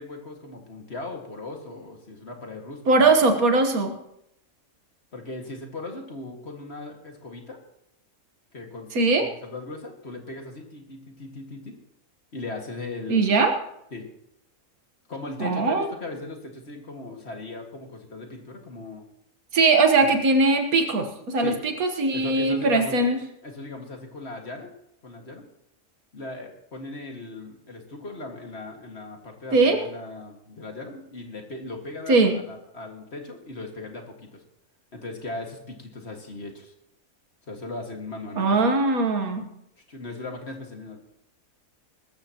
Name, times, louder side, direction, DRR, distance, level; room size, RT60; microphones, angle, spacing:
voice 1, 0.0-3.1 5.1-7.6 8.5-8.9 9.4-11.8 12.3-13.4 13.9-14.1 15.1-19.0 21.4-21.6 22.1-23.1 23.4-24.7 25.0-25.5 26.1-34.4 34.9-36.7 37.5-38.7 39.9-41.0, left 2 dB, 50° left, 2 dB, 2.1 m, -38 dB
voice 2, 2.9-4.0 8.9-9.3 13.1-13.5 15.4-15.9 19.5-23.2 29.5-29.8 32.1-32.4 38.4-39.5, right 3 dB, 80° right, 6 dB, 1.8 m, -20 dB
19.5 x 14.0 x 3.0 m, 0.80 s
omnidirectional pair, 1.5 m